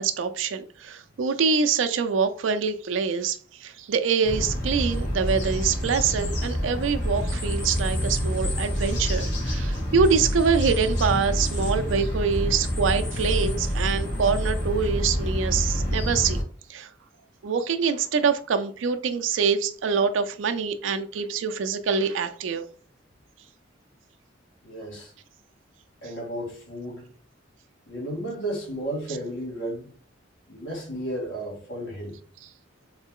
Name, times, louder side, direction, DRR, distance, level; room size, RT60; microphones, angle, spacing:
voice 1, 0.0-16.9 17.4-22.7, right 5 dB, 85° right, 0.4 m, -25 dB
sound 1, 4.2-16.4, equal, 65° left, 1.8 m, -27 dB
voice 2, 24.6-25.1 26.0-27.1 27.9-29.9 30.5-32.1, right 1 dB, 85° left, 1.8 m, -33 dB
3.9 x 3.2 x 3.6 m
head